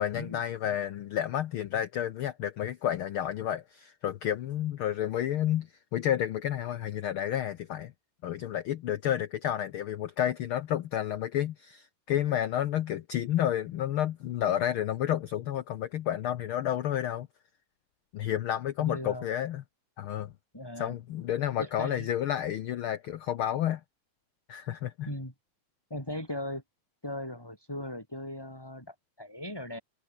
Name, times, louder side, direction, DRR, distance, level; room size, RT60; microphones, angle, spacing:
voice 1, 0.0-7.9 8.2-17.3 18.1-19.6 20.0-20.3 20.8-23.8 24.5-25.1, left 11 dB, 85° left, 1.1 m, -30 dB
voice 2, 18.8-19.3 20.5-21.0 21.6-22.1 25.1-25.3 25.9-26.6 27.0-29.8, left 1 dB, 5° left, 7.0 m, -38 dB
omnidirectional pair, 3.4 m